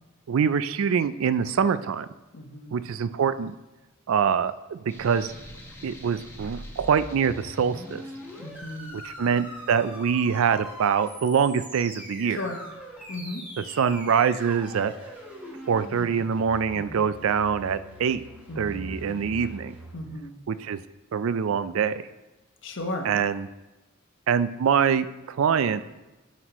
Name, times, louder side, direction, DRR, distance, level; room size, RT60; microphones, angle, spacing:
voice 1, 0.3-2.1 2.7-3.5 4.1-5.3 5.8-8.0 8.9-12.4 13.8-14.9 15.7-18.2 18.6-19.7 20.5-20.8 21.1-22.0 23.0-23.5 24.3-25.8, right 7 dB, 65° right, 14 dB, 0.4 m, -24 dB
voice 2, 2.3-2.7 8.4-9.0 12.3-12.5 13.1-13.4 16.7-17.1 18.5-18.9 19.9-20.3 22.6-23.1, left 1 dB, 60° left, 3 dB, 1.0 m, -35 dB
sound 1, 4.9-9.3, left 1 dB, 10° left, 0.9 m, -48 dB
sound 2, 4.9-19.9, equal, 5° right, 1.4 m, -42 dB
11.0 x 6.2 x 3.0 m, 1.1 s
head